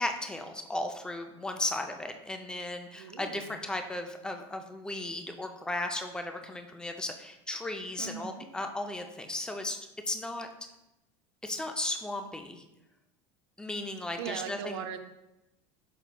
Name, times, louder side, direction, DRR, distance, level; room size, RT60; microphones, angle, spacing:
voice 1, 0.0-9.8 10.1-10.5 11.4-12.6 13.6-14.8, left 2 dB, 5° left, 5 dB, 0.4 m, -35 dB
voice 2, 2.9-3.5 8.0-8.5 14.2-15.0, right 8 dB, 80° right, 8 dB, 0.5 m, -39 dB
5.7 x 4.0 x 2.2 m, 0.92 s
supercardioid pair, 125°, 14 cm